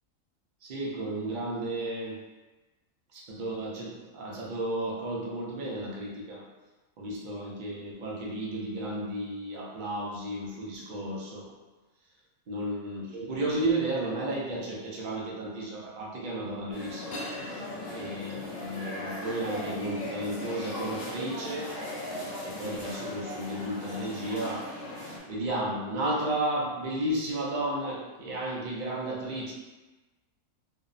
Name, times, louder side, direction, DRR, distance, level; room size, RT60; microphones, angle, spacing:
voice 1, 0.6-2.2 3.1-6.4 7.0-11.4 12.5-17.6 17.9-21.7 22.4-24.7 25.3-29.5, right 1 dB, 75° right, -3 dB, 0.4 m, -33 dB
sound 1, 16.7-25.2, left 1 dB, 70° left, 1.1 m, -38 dB
2.8 x 2.0 x 2.5 m, 1.2 s
omnidirectional pair, 1.4 m